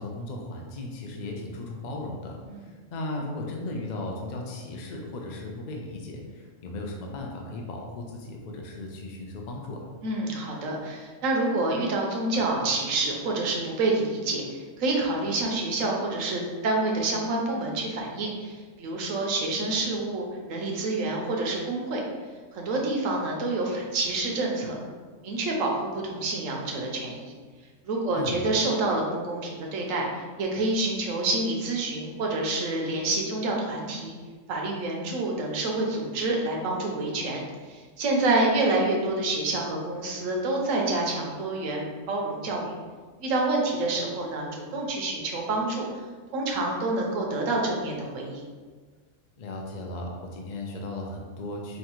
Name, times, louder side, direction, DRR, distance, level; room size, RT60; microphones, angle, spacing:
voice 1, 0.0-9.8 28.2-28.4 49.4-51.8, left 2 dB, 55° left, 0 dB, 0.5 m, -36 dB
voice 2, 10.0-14.4 14.8-22.0 22.5-24.7 25.2-27.3 27.8-34.2 34.5-42.8 43.2-46.0 46.3-48.4, right 2 dB, 80° right, -1 dB, 1.1 m, -28 dB
5.4 x 2.4 x 2.9 m, 1.4 s
omnidirectional pair, 1.3 m